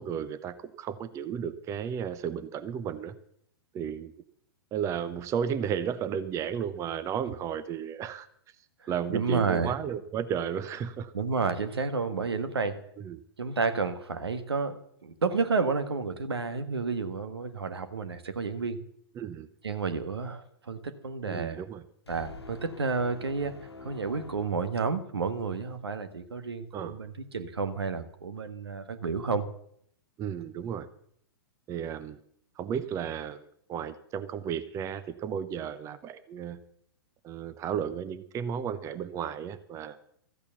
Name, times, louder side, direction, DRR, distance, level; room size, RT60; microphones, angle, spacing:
voice 1, 0.0-3.2 3.7-4.1 4.7-8.3 8.9-11.1 13.0-13.2 19.2-19.5 21.2-21.8 26.7-27.0 30.2-30.9 31.7-32.2 32.6-36.6 37.2-40.0, right 8 dB, 25° right, 13 dB, 0.7 m, -33 dB
voice 2, 9.1-9.7 11.1-12.8 13.4-18.8 19.6-21.6 22.1-29.4, right 4 dB, 75° right, 10 dB, 1.5 m, -31 dB
sound 1, 22.1-25.5, left 4 dB, 85° left, 1.3 m, -47 dB
14.0 x 8.5 x 7.1 m, 0.68 s
figure-of-eight pair, 110°, 13 cm